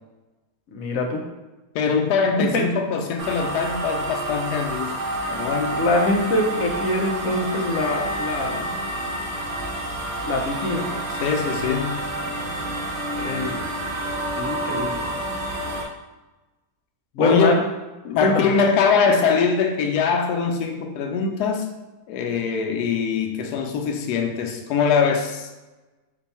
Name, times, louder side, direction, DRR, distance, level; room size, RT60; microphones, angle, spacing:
voice 1, 0.7-1.2 2.5-2.7 5.8-8.7 10.3-10.9 13.2-13.6 14.4-15.2 17.1-17.6 18.2-18.5, left 2 dB, 65° left, 2 dB, 1.0 m, -24 dB
voice 2, 1.7-5.0 5.3-5.8 11.2-12.1 17.2-17.7 18.0-21.7 22.1-25.5, left 5 dB, 90° left, 4 dB, 1.2 m, -22 dB
sound 1, 3.2-15.8, right 1 dB, 50° right, 0.6 m, -29 dB
5.2 x 2.3 x 4.1 m, 1.1 s
omnidirectional pair, 1.7 m